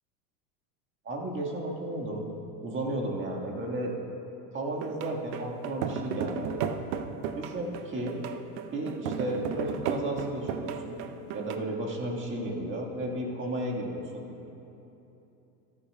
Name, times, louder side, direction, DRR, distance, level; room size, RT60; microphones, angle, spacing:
voice 1, 1.0-2.2 2.6-3.9 4.5-6.6 7.3-8.2 8.7-11.0 11.3-14.2, right 1 dB, 25° right, -1 dB, 1.6 m, -33 dB
sound 1, 4.8-11.6, right 7 dB, 45° right, 0.6 m, -34 dB
14.0 x 12.5 x 2.2 m, 3.0 s
hypercardioid pair, 105°, 47 cm